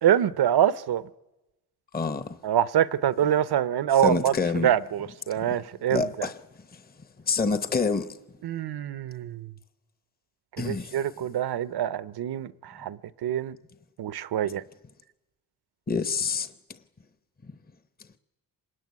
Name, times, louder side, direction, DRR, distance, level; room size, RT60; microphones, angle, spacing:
voice 1, 0.0-1.0 2.4-6.1 8.4-9.5 10.6-13.6 14.0-14.6, right 10 dB, 85° right, 0.8 m, -25 dB
voice 2, 1.9-2.4 4.0-4.7 5.9-6.4 6.7-6.8 7.3-8.2 10.6-11.0 15.9-16.5, left 4 dB, 25° left, 0.9 m, -27 dB
26.0 x 21.5 x 9.6 m
wide cardioid pair, 115°, 38 cm